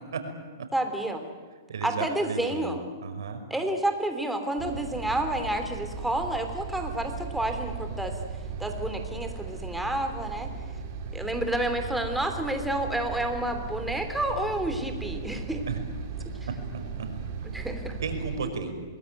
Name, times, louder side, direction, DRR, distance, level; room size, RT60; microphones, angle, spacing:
voice 1, 0.7-1.3 1.8-2.8 3.5-8.1 8.6-10.5 11.1-15.6 17.5-18.0, right 1 dB, 5° right, 5 dB, 3.2 m, -30 dB
voice 2, 1.7-2.8 3.0-3.4 15.7-15.8 17.0-17.1 18.0-18.7, right 5 dB, 80° right, 6 dB, 5.5 m, -33 dB
sound 1, 4.6-18.4, right 5 dB, 45° right, 4.8 m, -37 dB
26.5 x 20.0 x 9.2 m, 1.5 s
hypercardioid pair, 140°, 2 cm